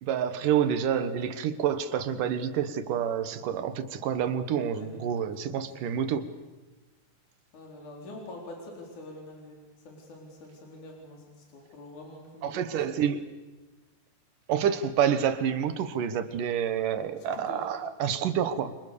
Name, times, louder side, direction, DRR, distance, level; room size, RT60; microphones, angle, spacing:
voice 1, 0.0-6.2 12.4-13.2 14.5-18.8, right 8 dB, 80° right, 3.0 m, -28 dB
voice 2, 4.7-5.1 5.4-5.6 7.5-9.6 9.9-11.3 11.5-13.0 17.2-17.6, left 2 dB, 65° left, 5.5 m, -45 dB
29.0 x 25.0 x 6.9 m
omnidirectional pair, 3.7 m